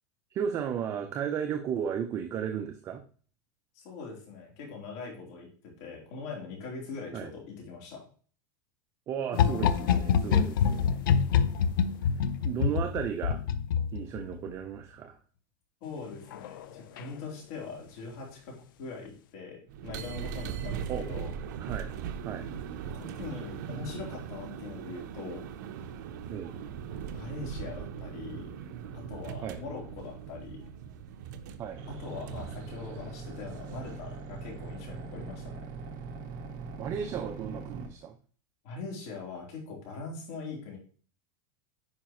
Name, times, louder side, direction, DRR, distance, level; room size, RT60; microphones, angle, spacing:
voice 1, 0.3-3.0 7.1-7.3 9.1-11.2 12.4-13.4 13.9-15.2 20.9-21.1 21.6-22.0 22.2-22.5 26.3-26.5 29.4-29.6 31.6-31.8 36.8-38.2, right 8 dB, 25° right, 6 dB, 0.6 m, -34 dB
voice 2, 3.7-8.0 15.8-21.3 22.8-25.5 27.1-28.5 28.9-30.6 31.9-35.6 38.6-40.8, left 4 dB, 55° left, -1 dB, 3.4 m, -42 dB
sound 1, 9.3-14.5 16.3-16.6 17.0-17.1, left 7 dB, 80° left, 0.6 m, -26 dB
sound 2, 19.7-34.1, right 8 dB, 65° right, 0.7 m, -40 dB
sound 3, 31.7-37.9, right 4 dB, 40° right, 1.4 m, -41 dB
9.5 x 5.1 x 3.0 m, 0.42 s
supercardioid pair, 160°, 11 cm